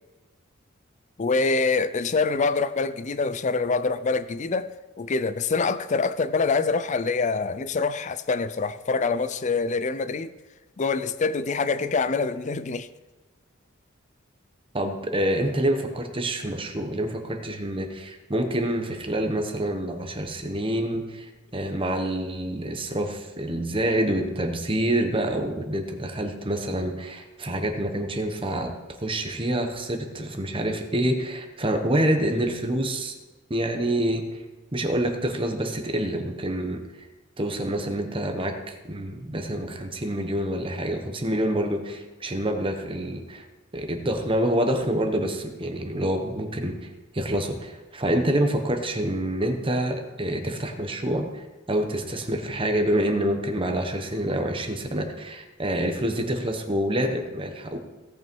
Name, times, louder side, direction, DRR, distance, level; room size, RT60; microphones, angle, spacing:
voice 1, 1.2-10.3 10.8-12.9, left 4 dB, 35° left, 0.4 m, -25 dB
voice 2, 14.7-28.7 29.0-33.1 33.5-34.4 34.7-37.1 37.4-43.4 43.7-46.8 47.1-57.8, right 1 dB, 25° right, 1.1 m, -27 dB
17.0 x 5.7 x 4.6 m
head